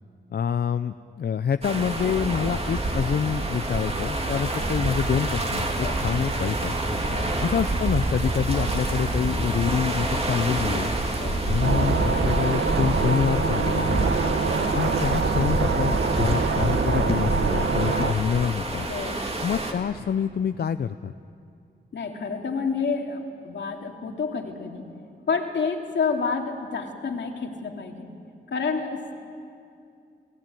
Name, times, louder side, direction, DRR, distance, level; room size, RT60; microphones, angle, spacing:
voice 1, 0.3-6.7 7.4-10.9 11.4-14.1 14.7-18.9 19.4-21.1, left 7 dB, 60° left, 11 dB, 0.6 m, -26 dB
sound 1, 1.6-19.7, right 2 dB, 35° right, 2.6 m, -27 dB
sound 2, 11.6-18.1, right 5 dB, 80° right, 1.4 m, -25 dB
voice 2, 13.9-14.3 18.9-19.2 21.9-24.9 25.3-28.1 28.5-29.1, left 5 dB, 80° left, 3 dB, 2.6 m, -29 dB
28.5 x 18.5 x 9.2 m, 2.5 s
wide cardioid pair, 130°, 19 cm